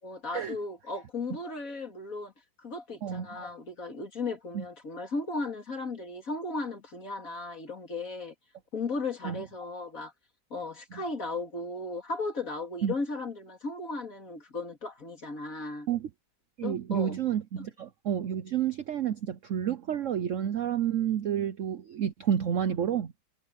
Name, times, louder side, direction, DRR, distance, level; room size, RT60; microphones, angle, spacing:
voice 1, 0.0-2.3 2.6-8.3 8.7-10.1 10.5-15.9 16.6-17.2, left 3 dB, 40° left, 3.4 m, -36 dB
voice 2, 16.6-23.1, right 9 dB, 65° right, 0.7 m, -30 dB
omnidirectional pair, 2.2 m